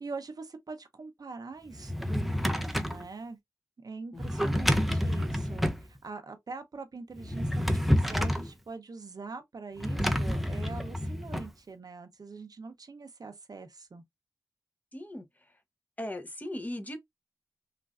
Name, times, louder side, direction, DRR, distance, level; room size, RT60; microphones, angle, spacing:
voice 1, 0.0-3.4 3.8-5.7 6.0-14.0, right 4 dB, 70° right, 0.6 m, -43 dB
Drawer open or close, 1.7-3.0 4.2-5.8 7.2-8.5 9.8-11.5, equal, ahead, 0.5 m, -28 dB
voice 2, 14.9-15.2 16.0-17.0, left 1 dB, 25° left, 0.8 m, -37 dB
3.1 x 2.5 x 2.4 m
wide cardioid pair, 75°, 7 cm